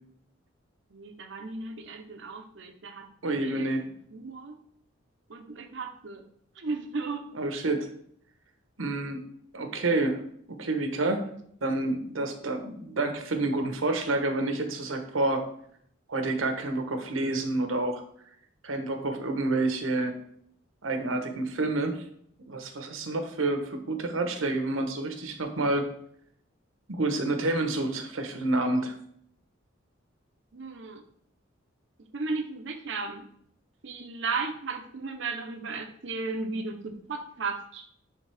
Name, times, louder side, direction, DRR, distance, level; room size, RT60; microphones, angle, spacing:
voice 1, 0.9-3.0 3.4-3.7 4.1-4.6 5.3-6.2 6.6-7.3 30.5-31.0 32.1-33.3 33.8-36.8 37.1-37.9, right 4 dB, 65° right, 4 dB, 0.8 m, -35 dB
voice 2, 3.2-3.9 7.3-7.9 8.8-9.2 9.5-10.2 10.5-11.3 11.6-15.4 16.1-18.0 18.6-20.1 20.8-22.0 22.5-25.9 26.9-28.9, right 2 dB, 85° right, 6 dB, 1.0 m, -28 dB
9.9 x 3.5 x 3.4 m, 0.67 s
head